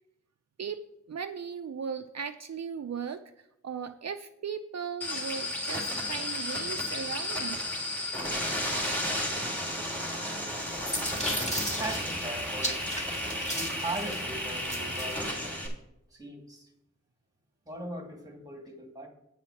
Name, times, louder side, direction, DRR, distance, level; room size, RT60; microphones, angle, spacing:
voice 1, 1.1-7.6, right 7 dB, 60° right, 7 dB, 0.5 m, -37 dB
sound 1, 5.0-15.7, left 1 dB, 5° left, 2.5 m, -33 dB
sound 2, 10.4-15.2, equal, 25° left, 2.0 m, -36 dB
voice 2, 11.8-12.9 13.5-15.7 16.1-16.7 17.7-19.1, right 1 dB, 10° right, 2 dB, 2.0 m, -39 dB
9.2 x 5.8 x 5.7 m, 0.82 s
wide cardioid pair, 75°, 29 cm